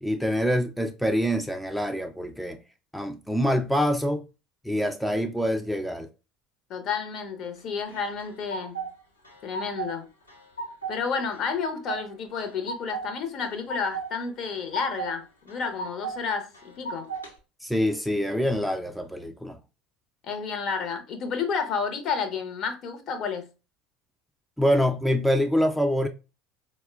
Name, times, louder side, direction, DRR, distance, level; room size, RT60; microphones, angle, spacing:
voice 1, 0.0-2.6 2.9-4.2 4.6-6.1 17.6-19.6 24.6-26.1, equal, ahead, 0.3 m, -25 dB
voice 2, 6.7-8.9 9.4-10.1 10.9-17.1 20.2-23.5, left 5 dB, 45° left, 0.6 m, -31 dB
sound 1, 7.9-8.9 9.2-10.0 10.3-11.0 11.3-12.0 12.4-13.1 13.4-14.1 14.4-15.1 15.5-16.2 16.5-17.3, right 4 dB, 90° left, 0.6 m, -35 dB
4.1 x 2.0 x 2.3 m
figure-of-eight pair, 70°, 0 cm